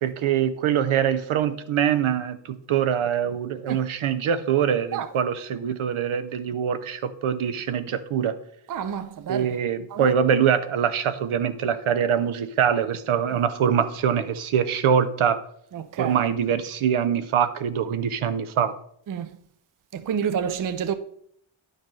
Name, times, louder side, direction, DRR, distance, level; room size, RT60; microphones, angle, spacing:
voice 1, 0.0-8.4 9.3-15.4 16.0-18.7, right 8 dB, 80° right, 0.7 m, -24 dB
voice 2, 8.7-9.5 9.9-10.1 15.7-16.2 19.1-19.3 19.9-20.9, right 8 dB, 45° right, 0.4 m, -28 dB
10.5 x 6.4 x 3.2 m
wide cardioid pair, 175°, 49 cm